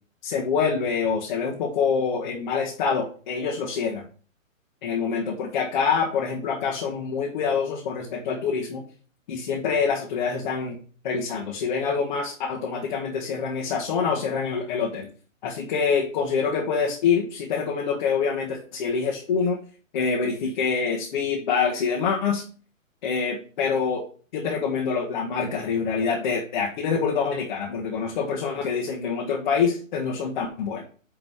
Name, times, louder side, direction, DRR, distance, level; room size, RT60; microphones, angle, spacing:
voice 1, 0.2-4.1 4.8-8.8 9.3-10.8 11.0-15.1 15.4-19.6 19.9-22.4 23.0-24.1 24.3-30.8, left 5 dB, 35° left, -3 dB, 1.7 m, -26 dB
9.6 x 3.8 x 4.8 m, 0.41 s
hypercardioid pair, 150°, 40 cm